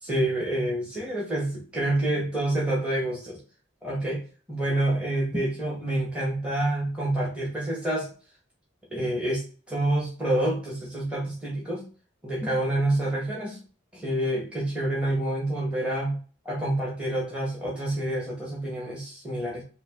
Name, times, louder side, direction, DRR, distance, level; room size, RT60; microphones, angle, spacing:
voice 1, 0.0-3.4 3.8-4.2 4.5-8.1 8.9-11.8 12.2-13.6 13.9-16.2 16.4-19.6, right 1 dB, 5° right, -4 dB, 1.0 m, -27 dB
4.1 x 2.7 x 3.5 m, 0.38 s
head